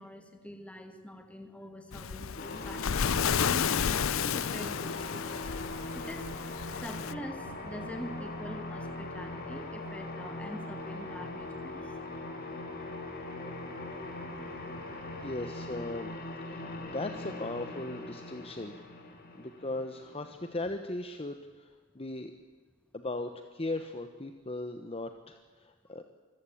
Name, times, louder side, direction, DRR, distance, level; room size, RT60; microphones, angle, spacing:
voice 1, 0.0-6.3 6.7-12.3 12.9-13.0 15.0-15.3 16.5-16.9, equal, 5° left, 6 dB, 2.1 m, -45 dB
Waves surf, 1.9-7.1, left 7 dB, 65° left, 0.5 m, -32 dB
sound 1, 2.4-20.7, left 2 dB, 45° left, 3.5 m, -41 dB
sound 2, 6.4-15.3, left 1 dB, 85° left, 5.6 m, -54 dB
voice 2, 15.2-16.1 16.4-16.6 16.9-18.7 19.0-21.7 21.9-22.3 22.9-26.0, left 2 dB, 25° left, 7 dB, 1.0 m, -38 dB
25.0 x 15.0 x 8.6 m, 1.5 s
head